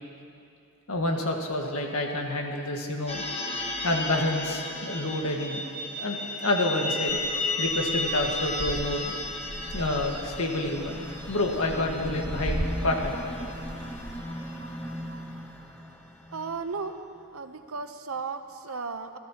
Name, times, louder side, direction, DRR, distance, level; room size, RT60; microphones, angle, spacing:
voice 1, 0.9-3.2 3.8-5.6 6.0-7.2 7.6-9.1 9.7-13.2, left 1 dB, 80° left, 2 dB, 1.6 m, -28 dB
sound 1, 3.1-15.6, left 2 dB, 30° left, 1.5 m, -34 dB
sound 2, 7.1-14.2, equal, 55° right, 1.2 m, -37 dB
sound 3, 8.9-17.3, left 1 dB, 5° left, 0.7 m, -41 dB
voice 2, 16.3-17.0 17.3-19.2, right 4 dB, 75° right, 8 dB, 0.8 m, -35 dB
27.0 x 15.0 x 2.9 m, 2.5 s
head